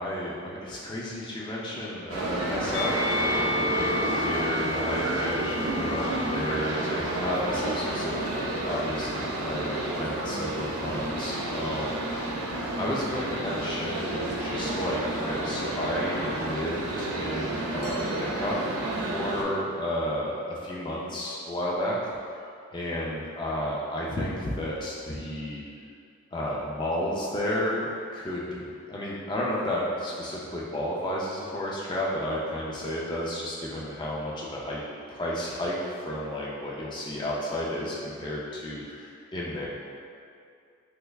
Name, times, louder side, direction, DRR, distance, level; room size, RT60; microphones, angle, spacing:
voice 1, 0.0-12.3 12.8-18.8 19.1-22.1 22.7-25.6 26.3-34.8 35.1-39.7, left 1 dB, 20° left, -5 dB, 0.3 m, -32 dB
sound 1, 2.1-19.4, right 2 dB, 80° right, 0.4 m, -31 dB
Musical instrument, 2.7-9.1 10.0-11.0, left 2 dB, 85° left, 0.6 m, -34 dB
3.3 x 3.2 x 2.3 m, 2.4 s
head